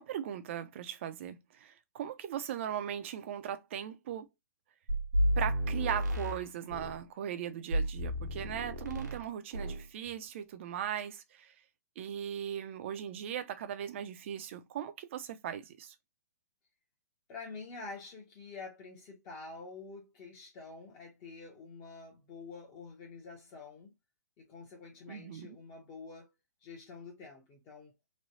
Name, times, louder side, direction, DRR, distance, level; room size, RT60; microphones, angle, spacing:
voice 1, 0.0-4.3 5.4-11.5 12.0-15.9 25.1-25.6, right 9 dB, 45° right, 0.5 m, -38 dB
sound 1, 4.9-7.0 7.7-9.3 9.5-9.9, equal, 90° right, 1.1 m, -32 dB
voice 2, 17.3-23.9 24.4-26.3 26.6-27.9, left 4 dB, 25° left, 0.8 m, -47 dB
3.1 x 2.2 x 2.7 m
hypercardioid pair, 150°, 9 cm